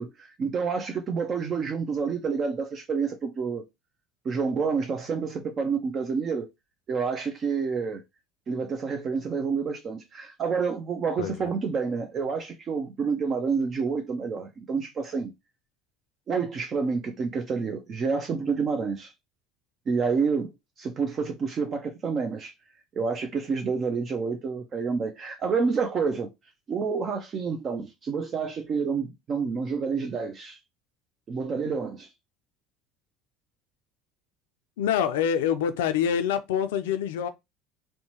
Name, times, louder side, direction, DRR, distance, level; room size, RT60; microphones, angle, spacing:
voice 1, 0.0-3.6 4.2-6.5 6.9-8.0 8.5-15.3 16.3-19.1 19.9-20.5 20.8-22.5 23.0-26.3 26.7-30.6 31.3-32.1, right 5 dB, 40° right, 0.5 m, -28 dB
voice 2, 11.2-11.5 34.8-37.3, left 8 dB, 80° left, 0.3 m, -26 dB
2.7 x 2.2 x 2.8 m
hypercardioid pair, 80°, 0 cm